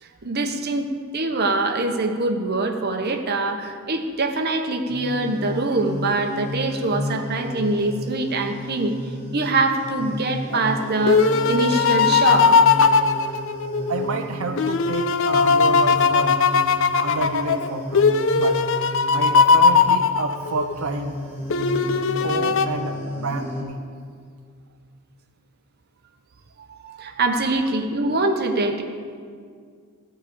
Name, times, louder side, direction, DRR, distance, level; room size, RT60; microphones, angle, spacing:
voice 1, 0.0-8.9 9.3-12.6 26.7-28.8, right 2 dB, 45° right, 4 dB, 1.0 m, -24 dB
sound 1, 4.9-23.6, left 1 dB, 10° right, 2.4 m, -33 dB
sound 2, 10.5-14.1 14.6-20.7 21.5-22.7, left 5 dB, 60° left, 0.5 m, -19 dB
voice 2, 13.9-16.4 17.0-18.0 18.3-18.6 19.1-21.2 22.2-23.8, right 4 dB, 65° right, 4 dB, 0.6 m, -29 dB
14.0 x 4.9 x 8.7 m, 2.1 s
head